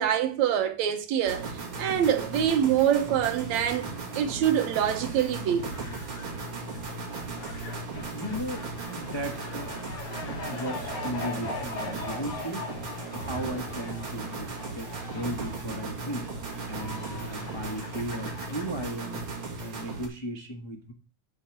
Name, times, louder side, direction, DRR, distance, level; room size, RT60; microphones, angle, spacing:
voice 1, 0.0-3.9 4.1-5.6, right 9 dB, 75° right, 2.3 m, -25 dB
sound 1, 1.3-20.1, right 3 dB, 45° right, 2.8 m, -37 dB
Fowl, 2.0-19.4, left 3 dB, 75° left, 3.3 m, -42 dB
voice 2, 7.9-12.7 13.1-16.3 16.7-19.2 19.6-20.9, equal, 35° left, 0.4 m, -36 dB
8.5 x 4.8 x 7.1 m
omnidirectional pair, 3.3 m